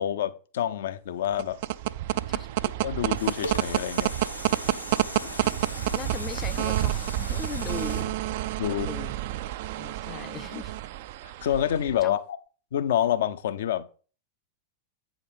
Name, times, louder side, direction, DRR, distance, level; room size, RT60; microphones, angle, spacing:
voice 1, 0.0-1.6 2.8-4.1 8.6-8.9 11.2-12.4 12.7-14.0, left 10 dB, 60° left, 0.7 m, -27 dB
sound 1, 1.2-12.0, right 15 dB, 50° right, 0.4 m, -29 dB
sound 2, 2.8-9.2 9.7-9.8, left 1 dB, 85° left, 1.0 m, -39 dB
voice 2, 5.9-8.1 8.4-9.2 9.8-10.7 12.0-12.2, left 7 dB, 25° left, 0.6 m, -39 dB
8.5 x 5.1 x 5.1 m
figure-of-eight pair, 90°, 0 cm